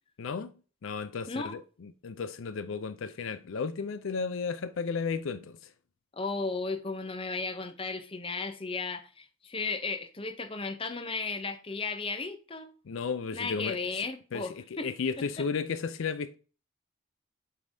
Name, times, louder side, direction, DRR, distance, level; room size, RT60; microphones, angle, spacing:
voice 1, 0.2-0.5 0.8-5.6 12.9-13.8 14.3-16.3, left 5 dB, 70° left, 0.4 m, -34 dB
voice 2, 6.1-12.7 13.3-14.5 14.8-14.9 15.4-15.5, left 4 dB, 25° left, 0.7 m, -35 dB
8.3 x 5.2 x 2.7 m
head